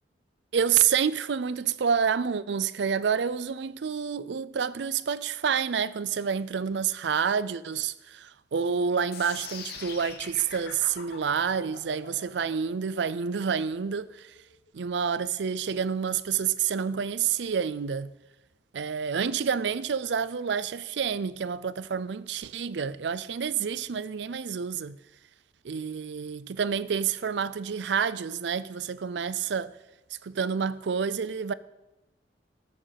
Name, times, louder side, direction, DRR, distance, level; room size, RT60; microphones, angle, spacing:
voice 1, 0.5-14.3 14.7-18.1 18.7-25.0 25.6-29.7 30.2-31.5, right 7 dB, 70° right, 0.5 m, -28 dB
sound 1, 9.1-15.2, left 5 dB, 60° left, 1.7 m, -43 dB
13.0 x 7.5 x 5.8 m
head